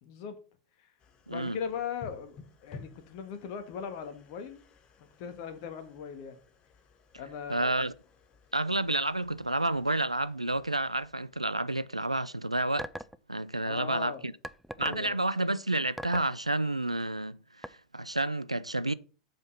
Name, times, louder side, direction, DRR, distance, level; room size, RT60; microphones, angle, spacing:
voice 1, 0.0-0.4 0.8-0.9 1.3-4.6 5.2-6.4 7.2-7.9 13.6-14.2 14.8-15.2, left 7 dB, 50° left, 1.7 m, -39 dB
sound 1, 1.0-12.1, left 4 dB, 30° left, 1.4 m, -55 dB
voice 2, 1.3-1.6 7.5-7.9 8.5-12.9 13.3-14.3 14.8-18.9, right 2 dB, 90° right, 0.4 m, -30 dB
sound 2, 12.8-13.2 14.4-15.1 16.0-16.3 17.6-17.7, equal, ahead, 0.4 m, -38 dB
7.6 x 5.5 x 5.6 m
figure-of-eight pair, 90°, 3 cm